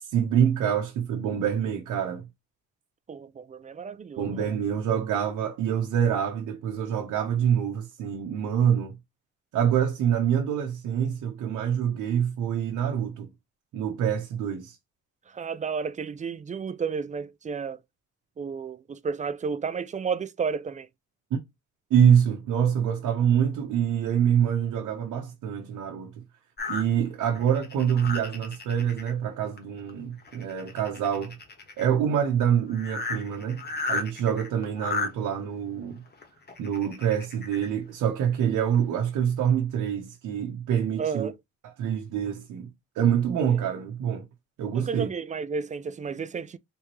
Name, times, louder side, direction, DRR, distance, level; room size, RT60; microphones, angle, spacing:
voice 1, 0.1-2.2 4.2-8.9 9.5-13.3 13.7-14.8 21.3-21.4 21.9-26.1 26.7-31.4 31.8-33.6 33.9-36.0 36.6-41.3 41.8-42.7 43.0-44.3 44.6-45.1, right 8 dB, 80° right, 0.8 m, -25 dB
voice 2, 3.1-4.6 15.3-17.8 18.4-20.9 41.0-41.4 44.7-46.6, right 5 dB, 25° right, 0.3 m, -32 dB
sound 1, 26.6-29.1 29.6-29.9 30.2-31.9 32.4-32.5 32.7-35.1 36.1-37.7 38.3-38.4 38.7-38.8, left 3 dB, 35° left, 1.2 m, -34 dB
3.5 x 2.9 x 3.0 m
cardioid pair, 90°, 30 cm